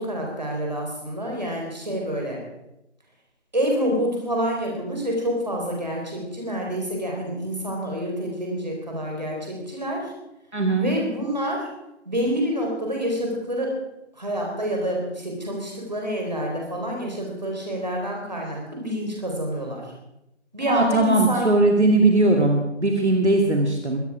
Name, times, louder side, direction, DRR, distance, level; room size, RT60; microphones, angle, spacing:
voice 1, 0.0-2.4 3.5-10.1 10.8-11.6 12.1-13.8 14.2-19.8 20.5-21.5, equal, 35° right, 0 dB, 4.3 m, -27 dB
voice 2, 10.5-10.9 20.7-24.0, right 2 dB, 70° right, 2 dB, 2.5 m, -19 dB
22.5 x 9.2 x 4.9 m, 0.88 s
figure-of-eight pair, 180°, 36 cm